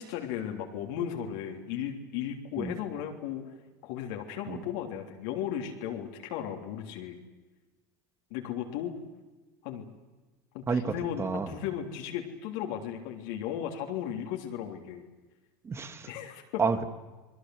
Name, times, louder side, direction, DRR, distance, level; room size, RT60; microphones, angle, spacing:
voice 1, 0.0-3.5 3.8-7.2 8.3-8.9 9.6-9.8 10.5-15.0 16.1-16.6, left 9 dB, 70° left, 3 dB, 3.3 m, -35 dB
voice 2, 10.7-11.5 15.6-16.1 16.6-16.8, right 5 dB, 25° right, 10 dB, 2.5 m, -30 dB
29.0 x 21.0 x 7.9 m, 1.2 s
hypercardioid pair, 85°, 10 cm